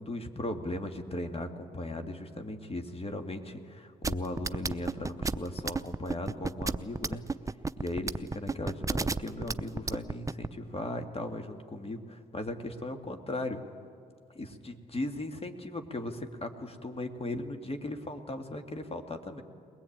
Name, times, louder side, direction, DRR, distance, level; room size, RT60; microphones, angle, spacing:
voice 1, 0.0-7.2 7.8-13.6 14.4-19.4, left 1 dB, 35° left, 5 dB, 2.4 m, -37 dB
sound 1, 4.0-10.5, right 3 dB, 20° right, 0.7 m, -31 dB
22.0 x 19.0 x 8.9 m, 2.3 s
supercardioid pair, 50°, 18 cm